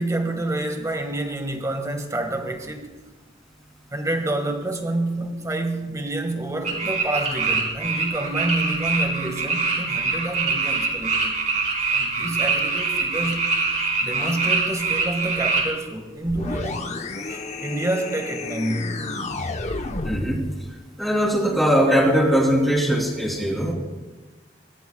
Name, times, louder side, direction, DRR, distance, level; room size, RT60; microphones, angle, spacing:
voice 1, 0.0-2.9 3.9-11.4 11.9-13.5 14.0-16.8 17.3-19.1, right 2 dB, 15° right, 1.6 m, -28 dB
sound 1, 6.6-15.6, right 4 dB, 40° right, 4.3 m, -24 dB
sound 2, 16.3-20.4, left 2 dB, 35° left, 0.9 m, -31 dB
voice 2, 20.0-20.4 21.0-23.7, equal, ahead, 3.2 m, -20 dB
22.0 x 20.0 x 2.3 m
head